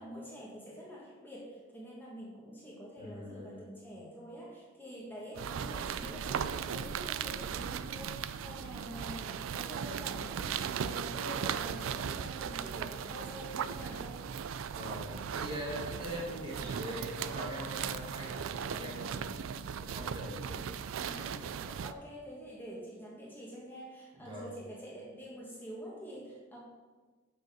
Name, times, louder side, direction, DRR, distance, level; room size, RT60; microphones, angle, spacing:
voice 1, 0.0-14.3 20.4-20.6 20.9-26.6, equal, 10° left, -5 dB, 1.4 m, -47 dB
voice 2, 3.0-3.6 14.7-19.3 19.8-20.7 21.6-21.8 24.2-24.5, equal, 25° right, -4 dB, 1.7 m, -42 dB
sound 1, 5.3-21.9, right 7 dB, 85° right, 0.4 m, -37 dB
6.4 x 5.2 x 6.0 m, 1.4 s
head